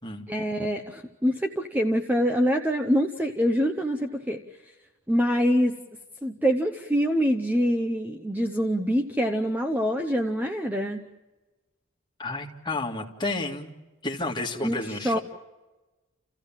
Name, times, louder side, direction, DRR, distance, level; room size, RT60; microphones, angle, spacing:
voice 1, 0.3-4.4 5.1-5.8 6.2-11.0 14.6-15.2, equal, 10° right, 4 dB, 0.8 m, -25 dB
voice 2, 12.2-13.7 14.0-15.2, left 2 dB, 20° left, 0 dB, 2.1 m, -31 dB
30.0 x 15.5 x 7.3 m, 1.2 s
head